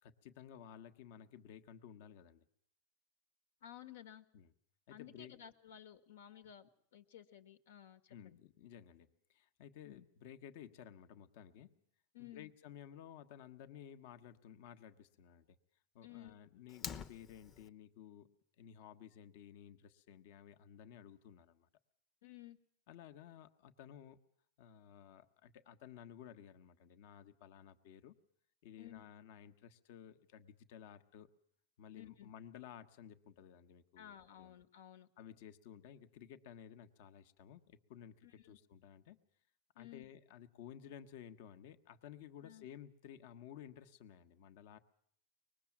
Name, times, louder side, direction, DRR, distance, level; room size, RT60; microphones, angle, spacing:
voice 1, 0.0-2.4 4.3-4.5 4.9-5.4 8.1-11.8 12.2-15.6 15.9-21.7 22.9-24.2 24.6-28.2 28.6-31.3 31.8-34.6 35.2-39.2 39.8-44.8, left 9 dB, 55° left, 8 dB, 1.3 m, -55 dB
voice 2, 3.6-4.3 4.9-8.4 9.8-10.1 12.1-12.5 16.0-16.3 22.2-22.6 28.8-29.0 32.0-32.3 34.0-35.1 38.2-38.6 39.8-40.1 42.4-42.7, left 11 dB, 85° left, 9 dB, 1.9 m, -55 dB
Fire, 16.7-17.7, left 6 dB, 25° left, 0.9 m, -46 dB
24.0 x 20.5 x 7.4 m, 0.66 s
supercardioid pair, 155°, 0 cm